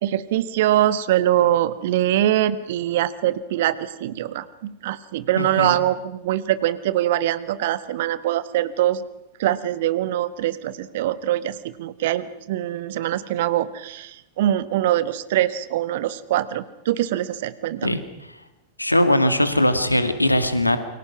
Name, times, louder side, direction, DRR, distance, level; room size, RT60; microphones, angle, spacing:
voice 1, 0.0-9.0 9.4-18.0, right 13 dB, 55° right, 15 dB, 1.3 m, -23 dB
voice 2, 5.4-5.8 17.8-18.0 18.8-20.8, left 1 dB, 85° left, 10 dB, 2.0 m, -20 dB
28.5 x 23.5 x 6.0 m, 0.91 s
figure-of-eight pair, 90°, 0 cm